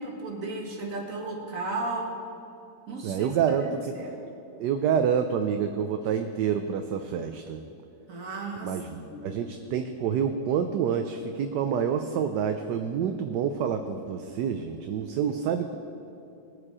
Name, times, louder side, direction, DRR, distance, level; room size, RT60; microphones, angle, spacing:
voice 1, 0.0-2.1 2.9-3.3 3.6-4.1 8.1-8.7 9.1-9.4, right 2 dB, 45° right, -1 dB, 2.1 m, -34 dB
voice 2, 3.0-3.9 4.5-7.6 8.6-15.8, right 7 dB, 75° right, 6 dB, 1.2 m, -28 dB
20.0 x 7.4 x 4.8 m, 2.7 s
omnidirectional pair, 2.0 m